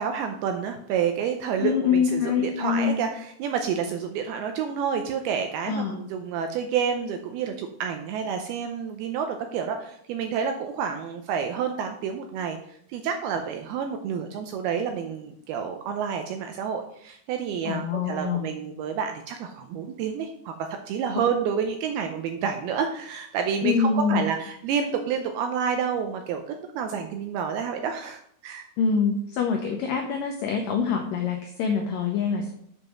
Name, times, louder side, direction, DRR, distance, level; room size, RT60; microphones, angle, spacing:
voice 1, 0.0-12.6 12.9-20.5 20.9-28.7, right 7 dB, 80° right, 5 dB, 2.3 m, -29 dB
voice 2, 1.6-3.0 5.7-6.0 17.7-18.5 23.6-24.3 28.8-32.5, left 6 dB, 85° left, 3 dB, 1.9 m, -25 dB
7.4 x 5.3 x 6.0 m, 0.68 s
omnidirectional pair, 5.0 m